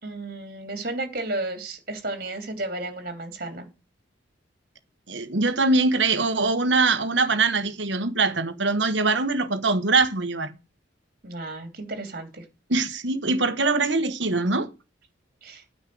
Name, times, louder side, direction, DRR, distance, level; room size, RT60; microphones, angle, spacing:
voice 1, 0.0-3.7 11.2-12.4 15.4-15.6, right 2 dB, 45° right, 2.9 m, -33 dB
voice 2, 5.1-10.5 12.7-14.7, right 3 dB, 70° right, 1.3 m, -23 dB
9.6 x 5.5 x 7.7 m
head